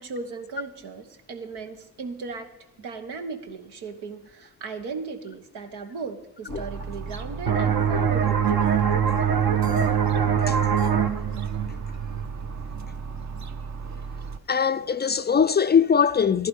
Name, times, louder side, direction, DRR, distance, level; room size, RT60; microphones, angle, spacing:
voice 1, 0.0-2.5 2.8-8.7, right 4 dB, 85° right, 1.2 m, -36 dB
sound 1, 6.5-14.4, right 5 dB, 45° right, 0.8 m, -35 dB
sound 2, 7.5-12.8, right 8 dB, 60° right, 1.2 m, -23 dB
voice 2, 14.5-16.5, left 7 dB, 25° left, 0.4 m, -21 dB
13.0 x 11.5 x 5.3 m
supercardioid pair, 60°, 39 cm